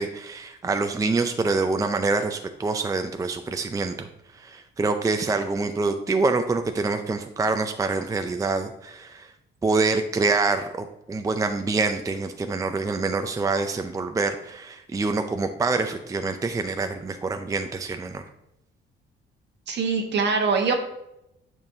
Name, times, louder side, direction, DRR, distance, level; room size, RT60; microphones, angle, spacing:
voice 1, 0.0-4.1 4.3-9.3 9.6-18.2, right 3 dB, 15° right, 7 dB, 0.5 m, -26 dB
voice 2, 19.7-20.7, right 4 dB, 60° right, 4 dB, 1.2 m, -23 dB
8.8 x 5.3 x 2.7 m, 0.84 s
cardioid pair, 90°, 20 cm